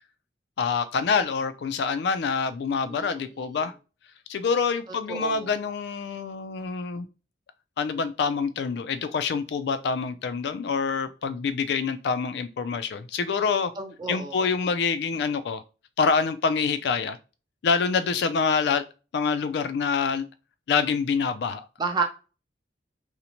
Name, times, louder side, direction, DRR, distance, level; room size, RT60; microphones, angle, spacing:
voice 1, 0.6-3.7 4.3-7.1 7.8-13.7 14.1-15.6 16.0-17.2 17.6-18.8 19.1-20.3 20.7-21.7, left 5 dB, 65° left, 12 dB, 0.3 m, -26 dB
voice 2, 2.9-3.6 5.1-5.6 13.8-14.5 21.8-22.0, right 4 dB, 25° right, 3 dB, 0.4 m, -31 dB
2.6 x 2.1 x 2.9 m, 0.32 s
head